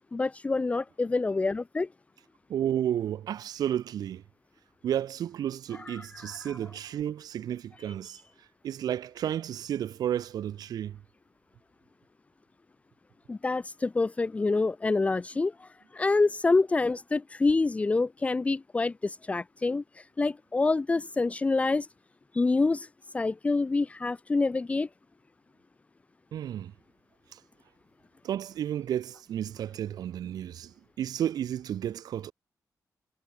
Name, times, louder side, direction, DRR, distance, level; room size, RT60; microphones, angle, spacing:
voice 1, 0.1-1.9 5.7-6.6 13.3-21.9 22.3-22.9 23.1-24.9, left 3 dB, 20° left, 1.0 m, -27 dB
voice 2, 2.5-4.2 4.8-8.2 8.6-11.0 26.3-26.7 28.2-32.3, right 10 dB, 90° right, 0.7 m, -32 dB
wide cardioid pair, 165°, 6 cm